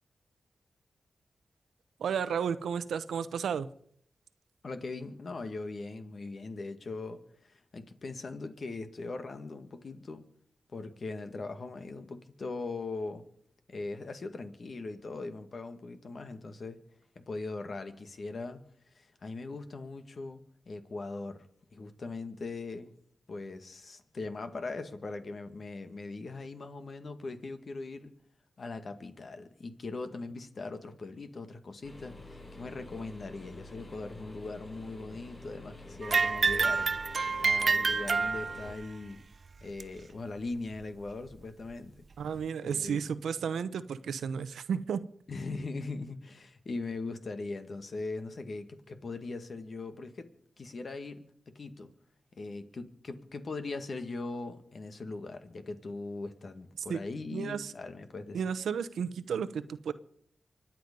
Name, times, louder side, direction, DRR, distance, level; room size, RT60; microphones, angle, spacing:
voice 1, 2.0-3.7 42.2-45.0 56.9-57.0 57.3-57.7 58.3-59.9, right 7 dB, 90° right, 14 dB, 0.8 m, -33 dB
voice 2, 4.6-10.2 10.7-13.2 13.7-16.8 17.2-18.6 19.0-22.9 23.3-28.1 28.6-36.9 37.4-39.2 39.6-42.1 42.6-43.0 45.3-50.3 50.6-51.9 52.4-58.4, left 3 dB, 60° left, 8 dB, 1.9 m, -40 dB
sound 1, 31.8-38.7, left 2 dB, 45° left, 7.0 m, -48 dB
sound 2, 36.0-38.8 39.8-39.9 40.7-40.8 41.7-41.8, right 4 dB, 60° right, 0.5 m, -28 dB
24.5 x 9.3 x 5.3 m, 0.64 s
cardioid pair, 50°, 0 cm